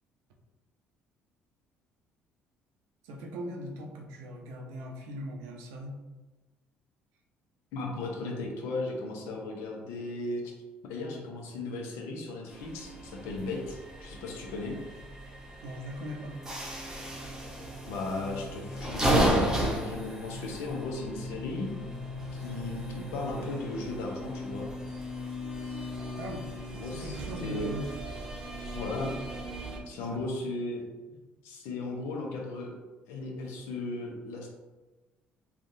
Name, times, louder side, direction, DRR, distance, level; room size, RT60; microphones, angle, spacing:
voice 1, 3.0-6.0 15.6-16.3 26.2-26.5 26.8-27.9 30.1-30.3 31.1-31.2, equal, 85° right, 1 dB, 0.6 m, -40 dB
voice 2, 7.7-10.5 10.8-14.8 17.9-21.7 22.3-24.7 26.7-27.7 28.7-29.1 29.9-30.9 31.4-32.7 33.1-34.5, left 2 dB, 85° left, 0 dB, 0.7 m, -36 dB
sound 1, 12.5-29.8, equal, 10° right, 0.8 m, -34 dB
3.4 x 2.4 x 2.7 m, 1.2 s
supercardioid pair, 80°, 4 cm